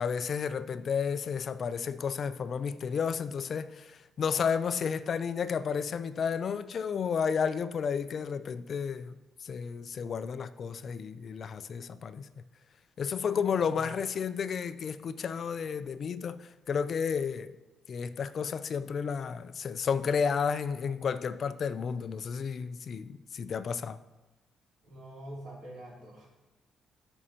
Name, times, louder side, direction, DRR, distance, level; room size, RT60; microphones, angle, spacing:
voice 1, 0.0-9.1 9.4-12.3 13.0-17.6 17.9-24.0, left 6 dB, 55° left, 0.4 m, -32 dB
voice 2, 24.9-26.3, right 1 dB, 70° right, 3.0 m, -45 dB
12.5 x 5.4 x 2.9 m
cardioid pair, 90°, 0 cm